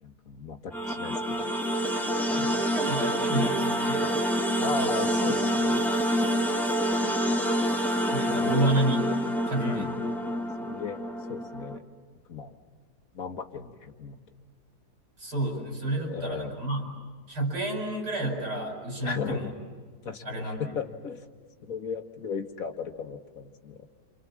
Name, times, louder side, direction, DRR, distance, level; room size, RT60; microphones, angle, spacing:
voice 1, 0.0-1.5 4.6-5.9 7.7-7.8 8.3-8.7 9.6-10.0 10.6-11.0 11.3-11.8 12.3-12.6 13.1-14.2 16.0-16.6 19.0-19.5 20.0-21.3 21.6-23.9, left 5 dB, 60° left, 6 dB, 1.7 m, -36 dB
sound 1, 0.7-11.8, equal, ahead, 1.6 m, -27 dB
voice 2, 2.3-4.2 8.1-9.1 9.5-9.9 15.2-16.9 17.3-19.5 20.2-20.7, right 1 dB, 80° right, 1 dB, 6.3 m, -30 dB
29.0 x 27.5 x 7.3 m, 1.5 s
omnidirectional pair, 1.7 m